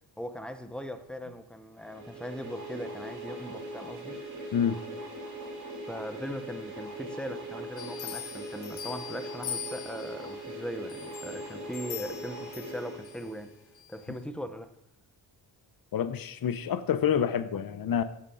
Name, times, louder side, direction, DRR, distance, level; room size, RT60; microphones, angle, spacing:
voice 1, 0.2-4.2 5.9-13.5 13.9-14.8, equal, ahead, 0.6 m, -39 dB
sound 1, 1.8-13.7, right 1 dB, 40° right, 3.0 m, -41 dB
sound 2, 7.8-10.3 10.9-13.2 13.7-13.9, left 9 dB, 75° left, 1.6 m, -41 dB
voice 2, 15.9-18.0, left 8 dB, 50° left, 0.8 m, -27 dB
8.1 x 7.1 x 5.5 m
cardioid pair, 120°, 45 cm